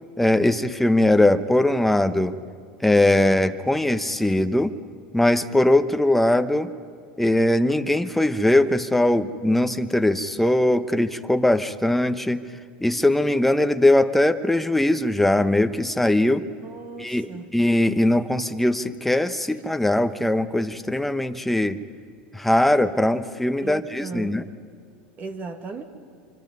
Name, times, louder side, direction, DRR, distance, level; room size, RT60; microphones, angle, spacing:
voice 1, 0.2-2.4 2.8-4.7 5.1-6.7 7.2-12.4 12.8-16.4 17.0-21.8 22.3-24.4, left 1 dB, 5° left, 9 dB, 1.0 m, -20 dB
voice 2, 16.6-17.5 23.6-24.4 25.2-25.8, right 4 dB, 40° right, 6 dB, 2.0 m, -36 dB
25.5 x 25.0 x 5.5 m, 2.4 s
hypercardioid pair, 100°, 5 cm